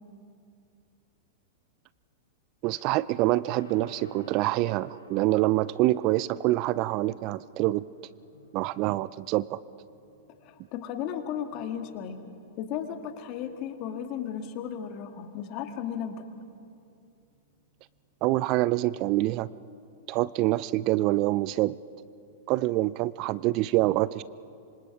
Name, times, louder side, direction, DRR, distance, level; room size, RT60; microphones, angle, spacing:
voice 1, 2.6-7.8 8.5-9.6 18.2-19.5 20.1-21.8 22.5-24.2, right 17 dB, 45° right, 20 dB, 0.4 m, -26 dB
Gong, 3.5-22.4, left 3 dB, 90° left, 7.5 m, -56 dB
voice 2, 10.4-12.2 12.6-16.2, left 9 dB, 45° left, 7 dB, 1.9 m, -35 dB
26.0 x 25.5 x 4.9 m, 2.4 s
hypercardioid pair, 105°, 0 cm